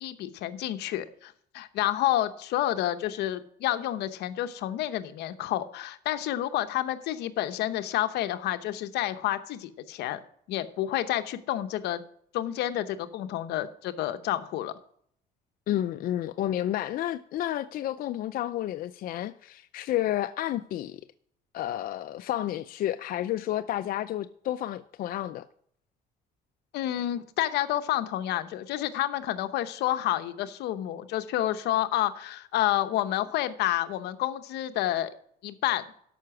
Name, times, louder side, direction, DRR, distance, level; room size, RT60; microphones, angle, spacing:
voice 1, 0.0-10.2 10.5-12.0 12.3-14.7 26.7-35.1 35.4-35.8, left 13 dB, 80° left, 0.9 m, -29 dB
voice 2, 15.7-21.0 21.5-25.4, left 12 dB, 60° left, 0.5 m, -31 dB
12.5 x 5.8 x 6.0 m
cardioid pair, 110°, 17 cm